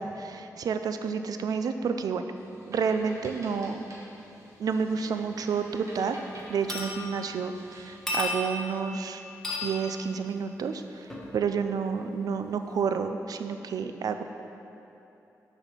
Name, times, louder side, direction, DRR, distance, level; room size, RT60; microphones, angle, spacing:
voice 1, 0.0-2.2 2.7-3.8 4.6-6.2 6.5-9.2 9.6-11.1 11.3-14.2, right 6 dB, 80° right, 8 dB, 0.4 m, -30 dB
sound 1, 2.4-8.1, equal, 55° right, 1.4 m, -49 dB
sound 2, 5.5-5.6 5.9-6.2 6.7-7.4 8.1-8.8 9.4-9.8 11.1-11.3 12.3-12.4, left 2 dB, 5° left, 1.2 m, -33 dB
6.6 x 4.2 x 6.1 m, 2.9 s
wide cardioid pair, 90°, 6 cm